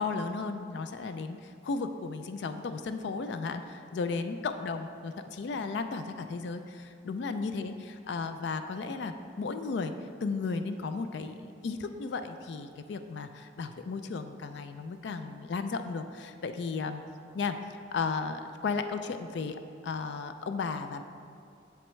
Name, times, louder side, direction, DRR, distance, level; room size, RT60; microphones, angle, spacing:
voice 1, 0.0-9.9 10.2-17.0 17.3-17.6 17.9-21.0, left 4 dB, 65° left, 8 dB, 0.3 m, -34 dB
7.7 x 7.0 x 3.1 m, 2.4 s
head